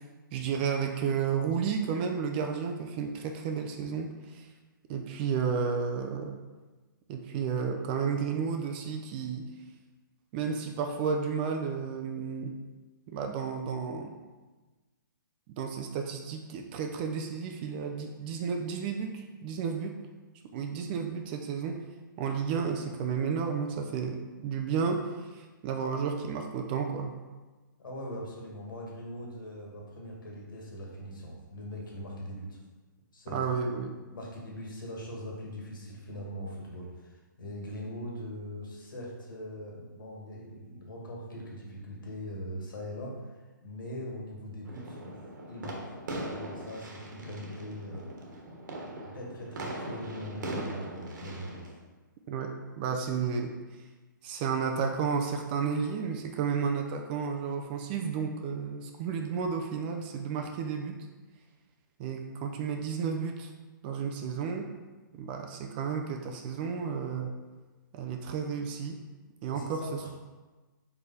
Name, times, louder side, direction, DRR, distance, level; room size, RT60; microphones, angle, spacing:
voice 1, 0.3-4.5 4.9-6.3 7.1-9.5 10.3-12.5 13.1-14.2 15.6-20.0 20.5-21.8 22.2-25.1 25.3-27.1 33.3-34.0 52.3-53.5 54.2-61.0 62.0-63.5 63.8-64.7 65.1-67.3 67.9-69.0 69.4-70.1, right 6 dB, 30° right, 4 dB, 0.5 m, -32 dB
voice 2, 27.8-32.6 33.1-33.7 34.1-45.1 45.5-45.8 46.2-48.1 49.0-51.6 69.5-70.1, equal, 75° left, -2 dB, 1.9 m, -41 dB
sound 1, 44.6-51.7, right 1 dB, 60° right, 1.3 m, -40 dB
5.0 x 4.8 x 4.1 m, 1.3 s
hypercardioid pair, 150°, 11 cm